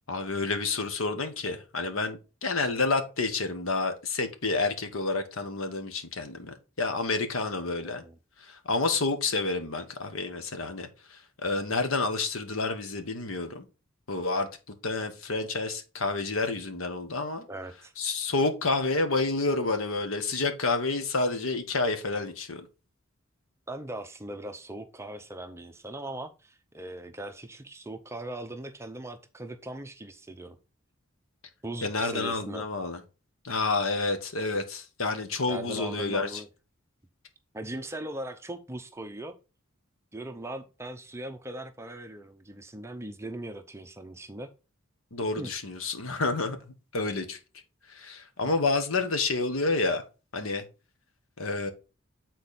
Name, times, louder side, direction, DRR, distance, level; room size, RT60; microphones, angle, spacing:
voice 1, 0.1-8.0 8.4-13.6 14.1-14.5 14.8-17.5 18.0-22.6 31.8-33.0 33.4-36.4 45.1-46.6 46.9-47.4 47.9-50.0 50.3-50.6 51.4-51.7, left 3 dB, 75° left, 1.2 m, -29 dB
voice 2, 7.8-8.2 17.5-17.9 23.7-30.6 31.6-32.6 35.5-36.5 37.5-39.3 40.1-44.5 45.4-45.5, right 1 dB, 15° right, 0.6 m, -39 dB
8.4 x 4.2 x 4.1 m
head